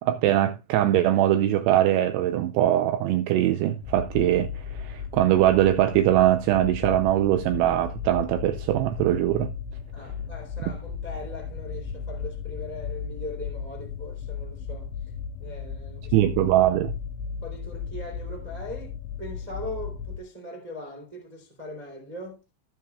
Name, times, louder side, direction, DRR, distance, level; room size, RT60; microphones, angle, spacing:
voice 1, 0.0-9.5 16.1-16.9, right 13 dB, 85° right, 2.3 m, -22 dB
sound 1, 3.8-20.2, left 6 dB, 85° left, 3.2 m, -36 dB
voice 2, 9.9-15.1 15.4-16.5 17.4-18.9 19.2-22.4, left 1 dB, 10° right, 2.0 m, -40 dB
17.5 x 7.1 x 2.3 m
omnidirectional pair, 5.5 m